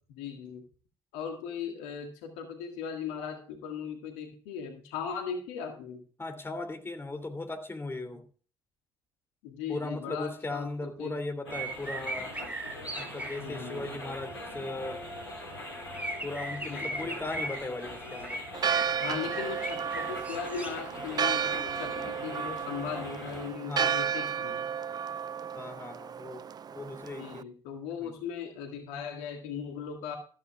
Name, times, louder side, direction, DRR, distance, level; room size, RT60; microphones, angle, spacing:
voice 1, 0.1-0.6 1.1-6.0 9.4-11.2 13.4-14.0 16.6-17.2 19.0-24.7 27.2-30.2, left 7 dB, 65° left, 4 dB, 1.8 m, -38 dB
voice 2, 6.2-8.2 9.7-12.3 13.0-15.0 16.2-18.4 19.2-19.3 23.7-23.9 25.5-26.4 26.7-27.5 28.0-28.1, left 2 dB, 15° left, 6 dB, 2.8 m, -37 dB
sound 1, 11.5-23.5, left 1 dB, 85° left, 2.9 m, -42 dB
sound 2, 11.5-13.4 15.4-15.5 15.9-20.7 21.3-21.4 21.8-21.9, right 1 dB, 10° right, 2.8 m, -38 dB
Church bell, 18.5-27.4, right 7 dB, 30° right, 0.5 m, -33 dB
14.0 x 12.5 x 2.3 m, 0.40 s
figure-of-eight pair, 50°, 13 cm